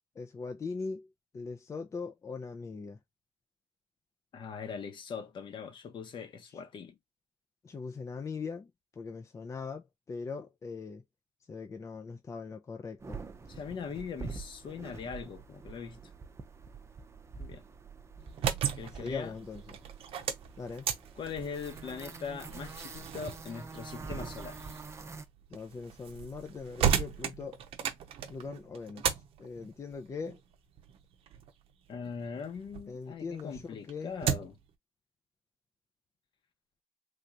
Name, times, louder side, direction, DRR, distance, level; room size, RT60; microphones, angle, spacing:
voice 1, 0.2-1.1 1.3-3.0 7.6-8.7 9.0-11.0 11.5-13.2 18.2-18.4 19.0-19.8 20.6-20.9 25.5-27.6 28.3-29.1 29.4-30.4 32.9-34.2, left 4 dB, 30° left, 0.5 m, -40 dB
voice 2, 4.3-7.0 13.5-16.0 17.4-17.6 18.7-19.3 21.2-24.6 31.9-34.6, left 6 dB, 55° left, 0.9 m, -41 dB
sound 1, 13.0-25.2, right 4 dB, 30° right, 0.6 m, -46 dB
sound 2, 18.2-32.9 33.3-34.7, right 8 dB, 75° right, 0.7 m, -36 dB
3.4 x 2.9 x 2.4 m
cardioid pair, 95°, 10 cm